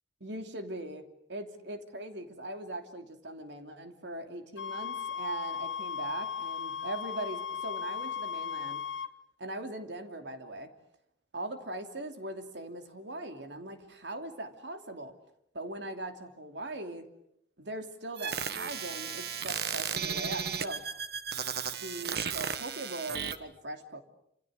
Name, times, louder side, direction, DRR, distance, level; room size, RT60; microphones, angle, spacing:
voice 1, 0.2-8.9 9.4-10.7 11.3-15.1 15.5-17.1 17.6-20.9 21.7-24.0, right 1 dB, 80° right, 5 dB, 3.0 m, -40 dB
sound 1, 4.6-9.1, left 7 dB, 90° left, 1.4 m, -36 dB
sound 2, 18.2-23.4, right 7 dB, 60° right, 1.4 m, -35 dB
28.5 x 27.5 x 6.6 m, 0.76 s
head